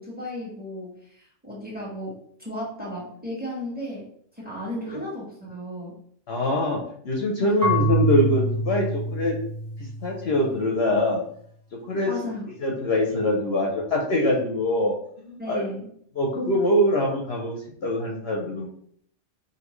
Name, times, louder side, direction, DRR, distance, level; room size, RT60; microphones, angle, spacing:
voice 1, 0.0-4.1 4.4-6.0 7.4-7.8 12.0-12.5 15.4-15.9, left 1 dB, 5° right, -4 dB, 1.5 m, -35 dB
voice 2, 6.3-9.4 9.8-11.2 11.7-12.1 12.6-15.7 16.2-18.7, left 1 dB, 60° left, -1 dB, 0.9 m, -24 dB
Marimba xylophone / Wood, 7.6-10.5, right 1 dB, 10° left, 1.0 m, -26 dB
5.1 x 2.8 x 3.1 m, 0.64 s
omnidirectional pair, 1.3 m